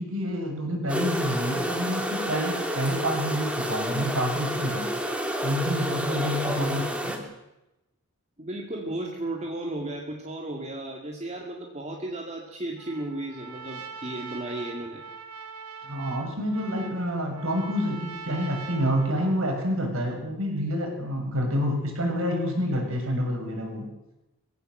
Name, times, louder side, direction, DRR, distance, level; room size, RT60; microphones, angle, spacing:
voice 1, 0.0-4.9 5.4-7.2 15.8-23.9, equal, 65° right, 2 dB, 6.8 m, -28 dB
sound 1, 0.9-7.2, equal, 5° right, 2.7 m, -30 dB
voice 2, 6.3-6.9 8.4-15.0, right 1 dB, 30° right, 1 dB, 2.3 m, -34 dB
Trumpet, 12.8-19.6, right 5 dB, 90° right, 2.8 m, -42 dB
23.0 x 16.5 x 7.8 m, 0.93 s
head